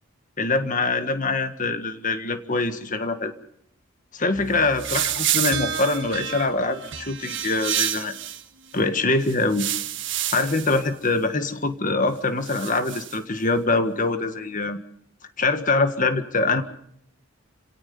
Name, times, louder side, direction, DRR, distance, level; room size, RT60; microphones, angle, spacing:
voice 1, 0.4-3.3 4.1-8.1 8.7-9.7 10.3-14.8 15.4-16.6, left 3 dB, 40° left, 9 dB, 1.7 m, -24 dB
sound 1, 4.4-8.4 9.2-10.9 12.4-13.2, right 10 dB, 60° right, 1.5 m, -29 dB
29.5 x 17.5 x 5.4 m, 0.73 s
head